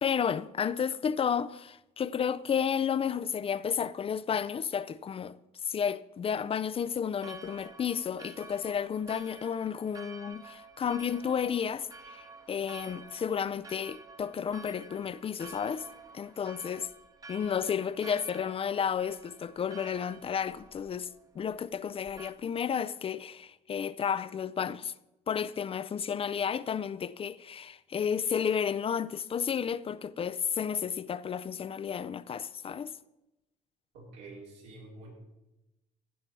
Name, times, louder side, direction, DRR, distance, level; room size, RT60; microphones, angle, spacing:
voice 1, 0.0-5.4 5.6-15.9 16.1-16.9 17.3-21.1 21.4-24.9 25.3-32.9, left 7 dB, 30° left, 0.4 m, -32 dB
Church bell, 7.2-22.3, right 3 dB, 20° right, 0.9 m, -50 dB
voice 2, 33.9-35.1, right 2 dB, 85° right, 4.1 m, -48 dB
15.5 x 5.9 x 4.6 m
cardioid pair, 90°, 18 cm